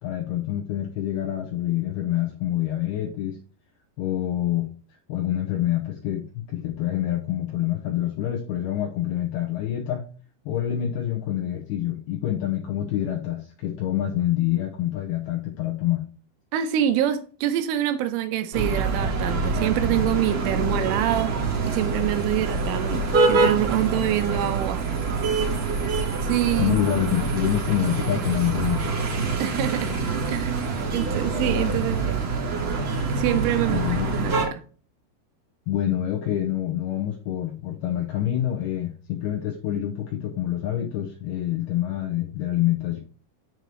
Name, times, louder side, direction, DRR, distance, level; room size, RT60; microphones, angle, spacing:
voice 1, 0.0-3.4 4.0-4.7 5.1-10.0 10.5-16.0 26.6-29.0 33.6-34.1 35.7-43.0, left 12 dB, 85° left, 2.2 m, -26 dB
voice 2, 16.5-21.3 21.6-24.8 26.2-26.8 29.4-29.9 30.3-32.3 33.1-34.6, right 12 dB, 80° right, 3.2 m, -26 dB
sound 1, 18.5-34.5, right 3 dB, 45° right, 2.4 m, -25 dB
7.9 x 6.9 x 3.1 m
omnidirectional pair, 5.9 m